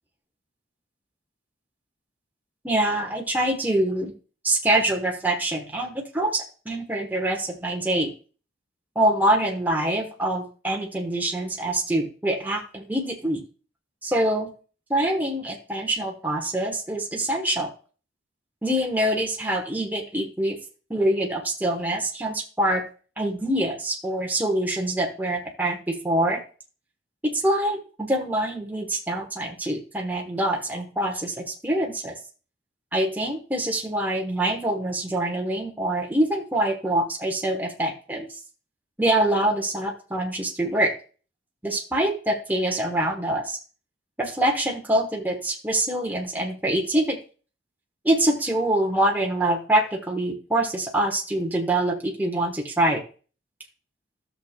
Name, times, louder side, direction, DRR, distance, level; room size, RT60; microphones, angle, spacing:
voice 1, 2.6-4.1 4.4-8.1 8.9-13.4 14.0-14.5 14.9-17.7 18.6-20.6 20.9-22.8 23.2-26.4 27.2-32.2 32.9-38.3 39.0-40.9 41.6-43.6 44.2-47.2 48.0-53.0, right 1 dB, 10° right, 0 dB, 1.2 m, -25 dB
14.0 x 6.6 x 2.3 m, 0.37 s
head